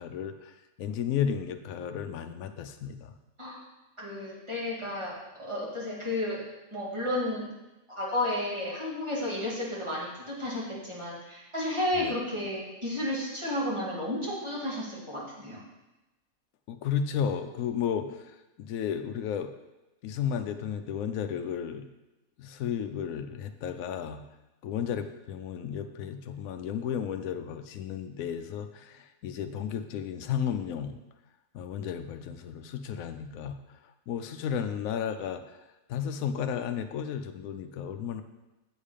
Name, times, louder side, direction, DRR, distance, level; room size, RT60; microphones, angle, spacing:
voice 1, 0.0-3.1 12.0-12.1 16.7-19.5 20.0-21.9 22.4-24.2 24.6-31.0 31.5-33.8 34.1-35.6 35.9-38.2, left 8 dB, 75° left, 6 dB, 1.0 m, -33 dB
voice 2, 4.0-5.1 5.4-6.4 6.7-7.5 7.9-15.6, left 1 dB, 20° right, -6 dB, 2.5 m, -32 dB
8.1 x 7.2 x 5.0 m, 1.0 s
omnidirectional pair, 1.5 m